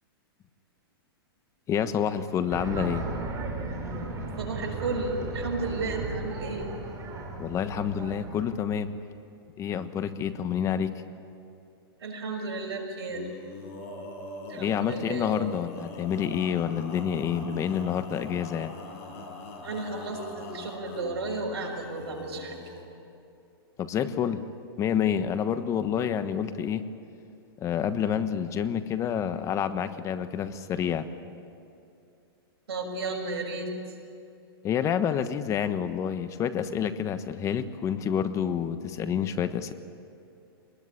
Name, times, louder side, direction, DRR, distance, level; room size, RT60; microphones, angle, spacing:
voice 1, 1.7-3.1 7.4-9.0 9.6-11.0 14.5-18.7 23.8-24.4 24.8-26.8 27.6-31.1 34.6-39.7, left 8 dB, 25° left, 11 dB, 1.2 m, -28 dB
sound 1, 2.5-8.8, right 3 dB, 25° right, 4.2 m, -36 dB
voice 2, 4.3-6.7 12.0-13.3 14.5-15.3 19.6-22.6 32.7-33.7, right 3 dB, 85° right, 2 dB, 6.1 m, -33 dB
Male singing, 13.1-22.9, left 2 dB, 45° left, 5.8 m, -42 dB
24.0 x 20.0 x 9.8 m, 2.7 s
hypercardioid pair, 140°, 13 cm